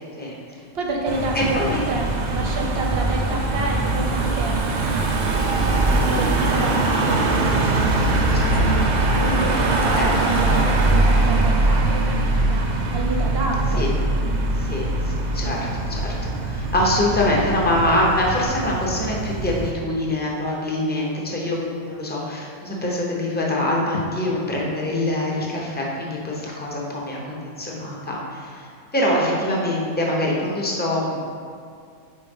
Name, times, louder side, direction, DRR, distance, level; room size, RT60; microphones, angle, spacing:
voice 1, 0.1-4.6 4.8-7.3 7.7-13.9 14.2-14.7 15.4-15.7, right 2 dB, 55° right, 0 dB, 0.8 m, -30 dB
Car passing by / Engine, 1.1-19.7, right 2 dB, 85° right, 0.4 m, -22 dB
voice 2, 1.3-1.8 8.4-8.8 10.0-10.1 13.8-13.9 14.6-31.2, left 1 dB, 10° left, -3 dB, 0.6 m, -24 dB
4.7 x 4.2 x 5.3 m, 2.3 s
omnidirectional pair, 1.5 m